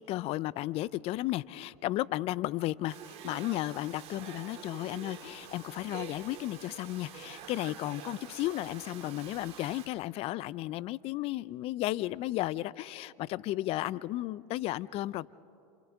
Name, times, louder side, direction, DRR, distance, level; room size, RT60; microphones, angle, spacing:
voice 1, 0.0-15.3, left 16 dB, 45° left, 20 dB, 0.5 m, -34 dB
Domestic sounds home sounds, 2.9-9.9, right 8 dB, 45° right, 2.5 m, -47 dB
28.5 x 28.5 x 3.5 m, 2.7 s
supercardioid pair, 115°, 14 cm